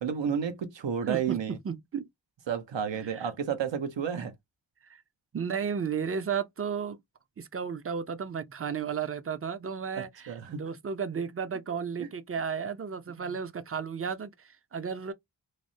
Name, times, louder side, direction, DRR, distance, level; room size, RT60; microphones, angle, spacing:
voice 1, 0.0-1.6 2.5-4.3 9.9-10.6 12.0-12.1 13.2-13.3, right 7 dB, 80° right, 0.7 m, -31 dB
voice 2, 1.1-1.4 1.6-2.1 3.0-3.3 4.9-5.0 5.3-7.0 7.4-15.1, right 6 dB, 30° right, 0.5 m, -33 dB
3.1 x 2.0 x 2.6 m
cardioid pair, 45°, 43 cm